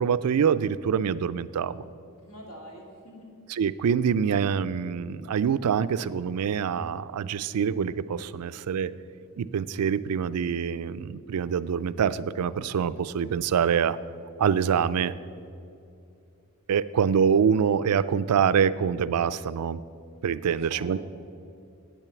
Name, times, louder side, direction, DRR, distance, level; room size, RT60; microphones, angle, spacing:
voice 1, 0.0-1.7 3.5-8.9 9.4-14.0 14.4-15.1 16.7-19.8 20.2-21.0, right 7 dB, 90° right, 16 dB, 0.4 m, -25 dB
voice 2, 2.2-3.3 20.4-21.0, equal, 75° left, -1 dB, 2.5 m, -45 dB
9.1 x 8.5 x 6.8 m, 2.6 s
head